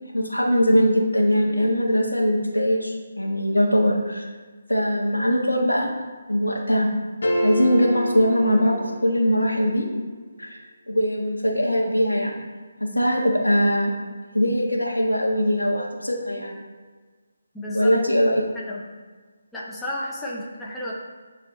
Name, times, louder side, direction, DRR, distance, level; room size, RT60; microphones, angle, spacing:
voice 1, 0.1-4.3 4.7-5.9 6.3-6.9 7.4-9.9 10.4-10.6 10.9-12.3 12.8-13.9 14.3-16.6 17.7-18.4, equal, 85° left, -1 dB, 1.5 m, -21 dB
sound 1, 7.2-9.5, equal, 60° left, 1.0 m, -27 dB
voice 2, 17.5-17.9 18.5-18.9 19.5-20.9, left 1 dB, 5° left, -6 dB, 0.7 m, -32 dB
9.5 x 3.3 x 3.2 m, 1.4 s
figure-of-eight pair, 150°, 0 cm